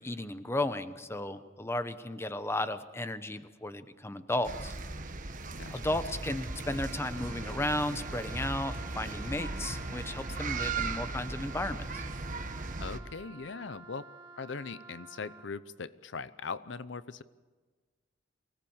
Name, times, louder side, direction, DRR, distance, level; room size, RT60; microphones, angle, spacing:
voice 1, 0.0-4.7 5.7-12.0, left 1 dB, 15° left, 11 dB, 0.9 m, -34 dB
sound 1, 4.4-13.0, right 3 dB, 45° right, 1.4 m, -38 dB
sound 2, 5.9-10.8, equal, 55° left, 7.8 m, -45 dB
Wind instrument woodwind instrument, 6.4-15.5, right 3 dB, 25° right, 2.0 m, -51 dB
voice 2, 12.8-14.1 14.4-17.2, left 5 dB, 70° left, 15 dB, 0.6 m, -40 dB
24.0 x 17.5 x 7.3 m, 1.4 s
head